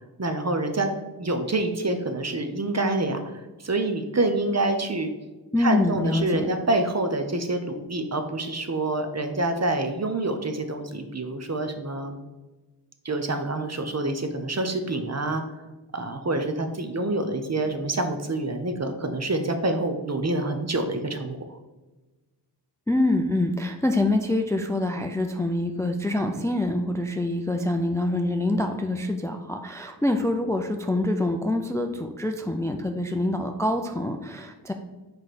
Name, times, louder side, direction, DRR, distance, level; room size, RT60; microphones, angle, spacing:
voice 1, 0.2-0.9 1.2-3.2 3.6-5.1 5.6-12.2 13.0-15.4 15.9-21.4, right 2 dB, 40° right, 6 dB, 0.7 m, -27 dB
voice 2, 5.5-6.5 22.9-34.7, left 1 dB, 5° left, 6 dB, 0.4 m, -25 dB
4.8 x 4.7 x 4.2 m, 1.2 s
wide cardioid pair, 60°, 42 cm